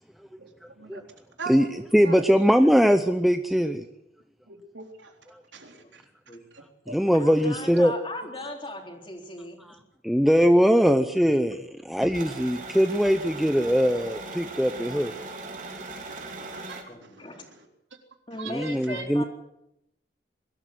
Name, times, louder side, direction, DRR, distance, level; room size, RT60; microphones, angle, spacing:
voice 1, 0.4-1.0 1.4-2.3 4.5-5.1 5.5-6.0 6.5-7.0 7.3-7.4 15.1-15.2 16.1-17.7 18.3-19.1, right 3 dB, 90° right, 3 dB, 3.8 m, -42 dB
voice 2, 1.9-3.8 6.9-7.9 10.0-15.1 18.5-19.2, equal, ahead, 7 dB, 0.7 m, -21 dB
voice 3, 7.1-9.6 16.9-17.5 18.3-19.3, left 1 dB, 30° left, 2 dB, 3.7 m, -38 dB
sound 1, 12.0-16.8, right 3 dB, 45° right, 3.5 m, -39 dB
22.5 x 13.5 x 9.4 m, 0.84 s
head